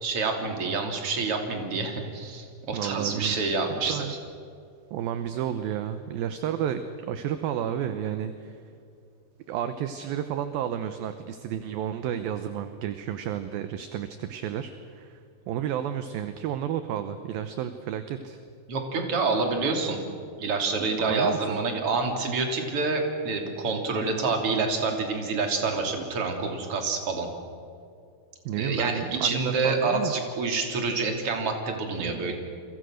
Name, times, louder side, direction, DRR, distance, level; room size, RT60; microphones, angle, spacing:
voice 1, 0.0-4.2 18.7-20.0 20.4-27.3 28.6-32.3, right 4 dB, 35° right, 3 dB, 3.4 m, -27 dB
voice 2, 2.7-3.4 3.9-4.1 4.9-8.6 9.5-15.2 15.5-18.4 21.0-21.6 28.5-30.1 32.0-32.3, right 10 dB, 75° right, 10 dB, 2.4 m, -31 dB
29.0 x 24.0 x 6.5 m, 2.5 s
omnidirectional pair, 4.9 m